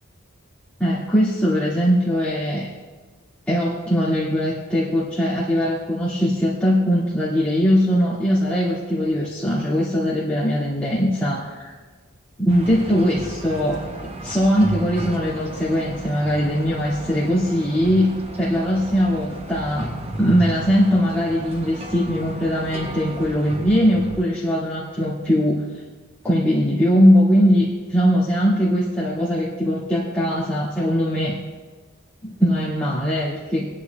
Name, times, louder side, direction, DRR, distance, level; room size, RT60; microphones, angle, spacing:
voice 1, 0.8-2.7 3.5-11.7 12.4-13.8 14.2-18.1 18.4-19.9 20.2-25.6 26.2-31.4 32.2-33.7, equal, 5° left, -10 dB, 2.0 m, -20 dB
sound 1, 12.5-24.3, right 1 dB, 30° right, 0.8 m, -33 dB
28.5 x 10.0 x 2.3 m, 1.4 s
head